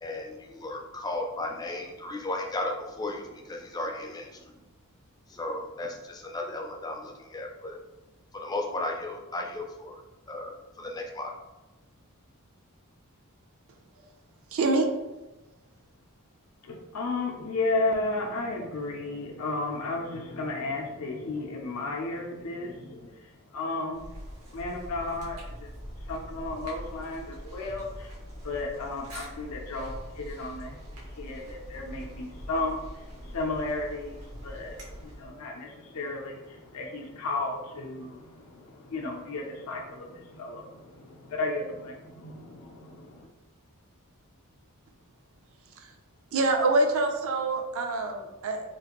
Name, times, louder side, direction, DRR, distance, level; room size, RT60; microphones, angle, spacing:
voice 1, 0.0-4.5 5.3-7.8 8.3-9.9 10.3-11.3, left 2 dB, 15° left, 2 dB, 0.3 m, -35 dB
voice 2, 14.5-14.9 46.3-48.6, right 2 dB, 65° right, 4 dB, 0.4 m, -25 dB
voice 3, 16.6-24.1 24.5-43.3, left 2 dB, 75° left, 1 dB, 0.5 m, -34 dB
sound 1, 23.9-35.4, equal, 90° right, 1.0 m, -43 dB
3.0 x 2.4 x 2.9 m, 1.1 s
head